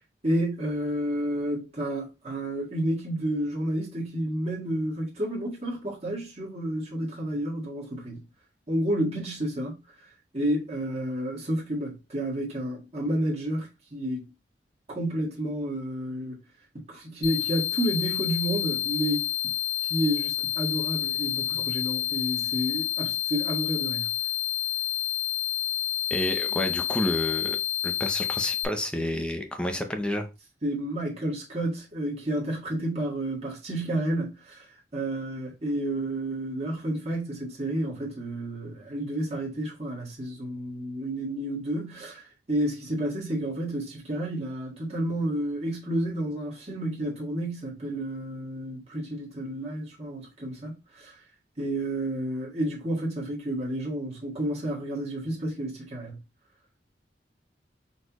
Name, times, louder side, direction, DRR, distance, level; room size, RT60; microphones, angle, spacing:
voice 1, 0.2-8.2 8.7-9.8 10.3-14.3 14.9-16.4 16.9-19.5 19.9-24.1 30.6-34.7 34.9-42.2 42.5-51.1 51.6-56.2, right 1 dB, 40° right, 1.8 m, -30 dB
sound 1, 17.2-28.6, left 12 dB, 60° left, 0.6 m, -29 dB
voice 2, 26.1-27.6 27.8-30.3, left 1 dB, 5° left, 0.7 m, -29 dB
4.3 x 3.2 x 3.0 m
head